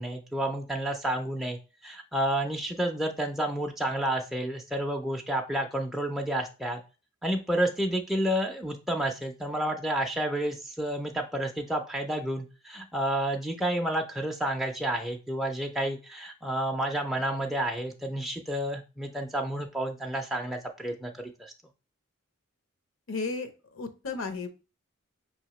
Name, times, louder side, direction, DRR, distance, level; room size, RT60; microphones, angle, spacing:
voice 1, 0.0-6.8 7.2-21.5, right 1 dB, ahead, 1 dB, 0.3 m, -30 dB
voice 2, 23.1-24.5, left 4 dB, 65° left, 9 dB, 0.6 m, -34 dB
5.3 x 2.8 x 3.0 m, 0.32 s
head